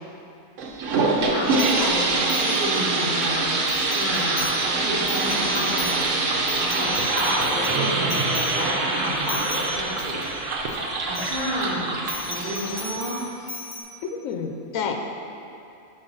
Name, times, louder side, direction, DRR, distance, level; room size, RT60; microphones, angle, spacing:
sound 1, 0.6-13.1, right 3 dB, 70° right, 1.0 m, -25 dB
voice 1, 1.3-3.5 3.9-10.2 11.0-11.9 12.3-13.2, equal, 35° right, -12 dB, 1.4 m, -30 dB
sound 2, 1.5-3.2 3.6-4.7 5.0-10.8 11.1-11.6 12.1-13.8, left 2 dB, 25° left, 0.9 m, -36 dB
voice 2, 14.0-15.0, left 6 dB, 80° left, 3 dB, 1.0 m, -29 dB
5.8 x 4.0 x 5.4 m, 2.7 s
omnidirectional pair, 1.4 m